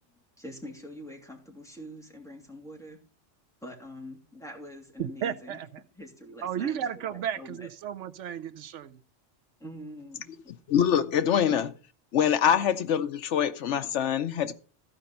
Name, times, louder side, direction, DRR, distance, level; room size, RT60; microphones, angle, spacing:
voice 1, 0.4-3.0 3.6-5.6 5.9-7.7 9.6-10.5, left 1 dB, 5° left, 2.9 m, -44 dB
voice 2, 5.0-5.7 6.4-9.0, right 9 dB, 85° right, 1.0 m, -33 dB
voice 3, 10.7-11.7 12.1-14.5, left 9 dB, 80° left, 1.0 m, -24 dB
14.5 x 5.2 x 5.5 m
omnidirectional pair, 1.2 m